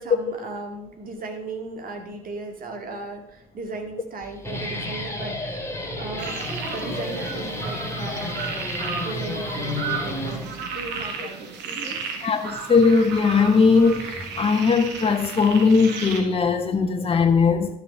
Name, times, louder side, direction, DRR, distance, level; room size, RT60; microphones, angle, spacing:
voice 1, 0.0-5.7 6.0-8.4 9.0-12.1, right 3 dB, 45° right, 2.2 m, -36 dB
Guitar, 4.2-10.8, left 1 dB, 15° left, 2.5 m, -31 dB
sound 1, 6.2-16.2, right 5 dB, 60° right, 1.6 m, -34 dB
voice 2, 12.2-14.1 14.4-17.7, left 5 dB, 30° left, 1.2 m, -19 dB
11.5 x 5.9 x 5.6 m
figure-of-eight pair, 50°, 20 cm